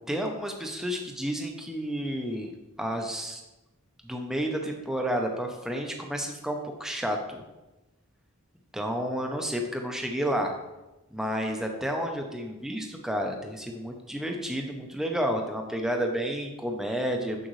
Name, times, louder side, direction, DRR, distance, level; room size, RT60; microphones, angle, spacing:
voice 1, 0.1-2.5 2.8-3.4 4.0-7.4 8.7-10.5 11.1-17.5, equal, ahead, 2 dB, 0.6 m, -31 dB
7.2 x 6.4 x 3.1 m, 1.0 s
head